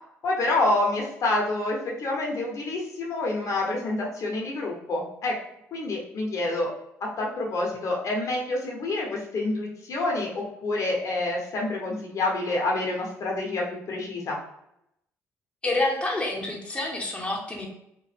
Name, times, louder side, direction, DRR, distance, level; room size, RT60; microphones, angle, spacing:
voice 1, 0.2-5.3 5.7-6.7 7.0-14.4, left 2 dB, 60° left, -1 dB, 0.9 m, -27 dB
voice 2, 15.6-17.7, left 2 dB, 15° left, -1 dB, 0.9 m, -28 dB
2.9 x 2.1 x 3.2 m, 0.78 s
supercardioid pair, 60°, 6 cm